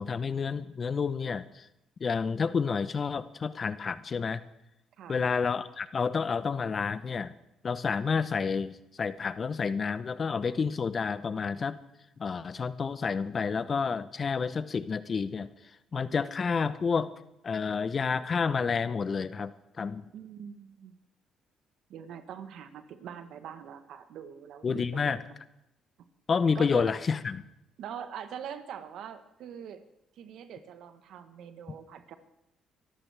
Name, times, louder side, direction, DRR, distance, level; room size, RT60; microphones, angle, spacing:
voice 1, 0.0-1.6 2.0-4.4 5.1-7.3 7.6-11.8 12.2-15.5 15.9-17.1 17.4-19.5 19.8-20.0 24.6-25.2 26.3-27.4, left 5 dB, 45° left, 13 dB, 0.9 m, -29 dB
voice 2, 20.1-20.9 21.9-25.2 26.5-26.9 27.8-29.8 30.2-32.2, right 8 dB, 75° right, 10 dB, 1.3 m, -43 dB
24.5 x 13.0 x 3.5 m, 0.90 s
supercardioid pair, 65°, 0 cm